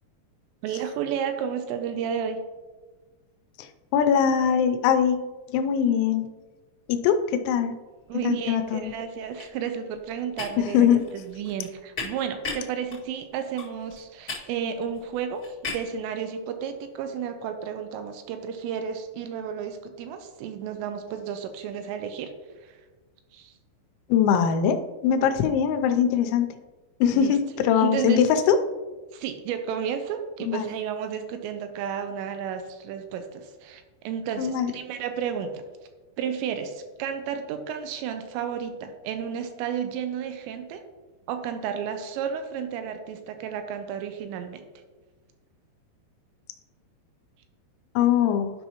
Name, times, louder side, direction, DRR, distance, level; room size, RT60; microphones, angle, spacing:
voice 1, 0.6-2.4 8.1-22.3 22.6-22.7 23.3-23.5 27.1-27.3 27.8-28.2 29.1-35.6 36.2-40.8 41.3-44.6, right 8 dB, 85° right, 7 dB, 2.8 m, -32 dB
voice 2, 3.9-5.2 5.5-6.2 6.9-7.8 8.2-8.9 10.6-11.0 24.1-24.8 25.0-26.5 27.0-28.6 30.5-30.7 34.4-34.7 48.0-48.5, left 8 dB, 90° left, 7 dB, 3.0 m, -21 dB
sound 1, 8.2-8.5 8.8-16.0, left 4 dB, 75° left, 0.7 m, -38 dB
11.5 x 5.5 x 2.9 m, 1.3 s
omnidirectional pair, 5.2 m